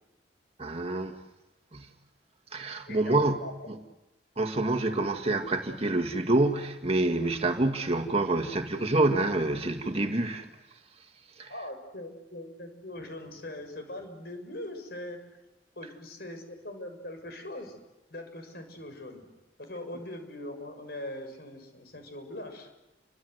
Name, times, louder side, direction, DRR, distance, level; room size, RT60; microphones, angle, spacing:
voice 1, 0.6-1.1 1.7-1.9 2.5-3.4 3.7-3.8 4.4-10.5 11.4-11.5, right 2 dB, 35° right, 2.0 m, -27 dB
voice 2, 2.9-3.5 11.5-15.2 15.7-17.8 18.1-19.3 19.6-22.8, left 1 dB, 60° left, 6.7 m, -41 dB
29.5 x 25.0 x 8.1 m
head